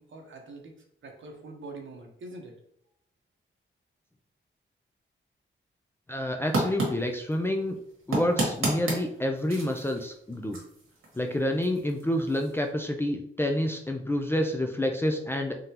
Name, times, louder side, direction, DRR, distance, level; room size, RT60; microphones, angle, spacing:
voice 1, 0.0-2.5, right 2 dB, 70° right, 2 dB, 0.9 m, -44 dB
voice 2, 6.1-7.8 8.1-10.6 11.2-15.6, left 1 dB, 10° left, 3 dB, 0.3 m, -28 dB
sound 1, 6.4-12.7, right 2 dB, 90° right, 1.6 m, -34 dB
3.7 x 3.7 x 2.8 m, 0.70 s
wide cardioid pair, 160°, 21 cm